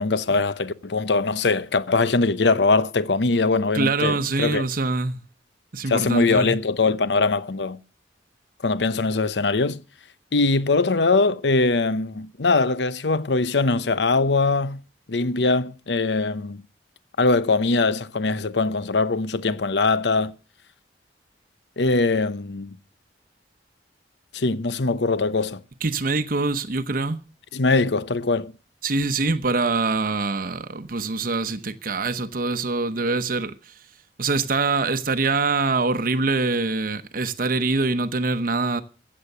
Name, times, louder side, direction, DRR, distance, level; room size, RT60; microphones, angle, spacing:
voice 1, 0.0-4.6 5.9-7.8 8.6-9.8 10.3-14.8 15.1-16.6 17.2-20.3 21.8-22.8 24.3-25.6 27.5-28.5, left 3 dB, 75° left, 0.8 m, -22 dB
voice 2, 3.7-5.2 5.7-6.6 25.8-27.2 28.8-33.8 34.2-38.8, right 3 dB, 55° right, 0.9 m, -24 dB
15.0 x 7.9 x 6.7 m
head